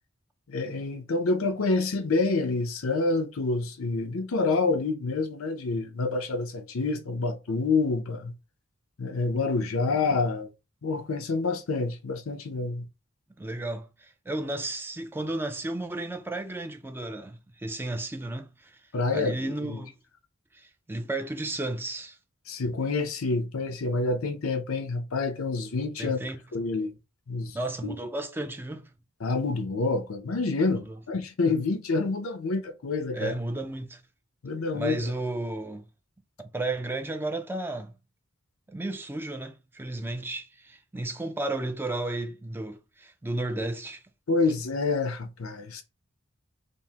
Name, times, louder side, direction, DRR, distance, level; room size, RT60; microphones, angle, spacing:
voice 1, 0.5-8.3 9.0-10.5 10.8-12.9 18.9-19.8 22.5-26.2 26.5-26.9 27.3-27.6 27.8-28.0 29.2-33.3 34.4-35.1 44.3-45.8, left 3 dB, 85° left, 0.6 m, -27 dB
voice 2, 13.4-18.8 19.1-19.9 20.5-22.2 26.0-26.4 27.5-28.9 30.7-31.0 33.1-34.0 34.7-35.9 36.4-37.9 38.7-44.0, right 2 dB, 10° right, 0.4 m, -33 dB
5.1 x 2.0 x 2.8 m
head